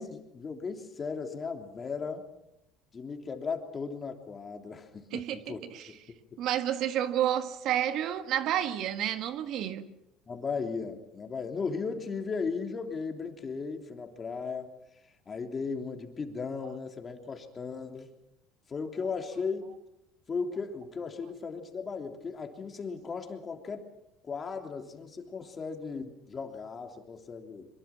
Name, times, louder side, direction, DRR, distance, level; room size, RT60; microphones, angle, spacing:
voice 1, 0.0-2.3 2.9-6.0 10.3-14.7 15.3-18.1 18.7-19.7 20.3-23.9 24.2-27.7, left 5 dB, 30° left, 3.2 m, -36 dB
voice 2, 5.1-5.9 6.4-9.9, right 11 dB, 60° right, 1.5 m, -30 dB
24.0 x 22.5 x 6.1 m
supercardioid pair, 110°, 0 cm